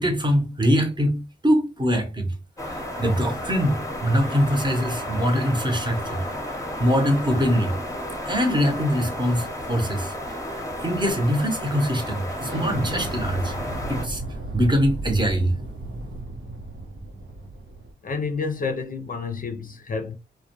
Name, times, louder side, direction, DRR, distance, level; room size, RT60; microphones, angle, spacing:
voice 1, 0.0-2.3 2.6-6.2 6.6-7.8 8.3-10.1 10.8-13.6 13.9-14.2 14.5-15.5, equal, 20° right, 0.8 m, -23 dB
sound 1, 2.6-14.1, left 1 dB, 15° left, 0.8 m, -32 dB
Explosion, 12.4-17.9, right 2 dB, 80° right, 0.8 m, -34 dB
voice 2, 18.0-20.2, left 4 dB, 45° left, 0.5 m, -29 dB
2.3 x 2.2 x 2.8 m
cardioid pair, 55°, 20 cm